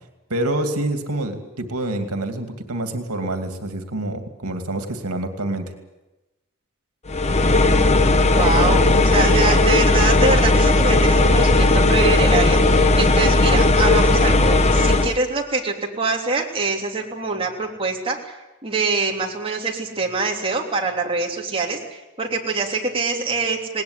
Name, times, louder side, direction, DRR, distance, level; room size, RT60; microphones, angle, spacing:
voice 1, 0.3-5.6, right 1 dB, 85° right, 7 dB, 2.6 m, -27 dB
sound 1, 7.1-15.2, left 2 dB, 30° left, 1.0 m, -16 dB
voice 2, 8.3-18.3 18.6-23.8, right 4 dB, 25° right, 0 dB, 3.3 m, -24 dB
20.0 x 19.0 x 9.8 m, 1.0 s
head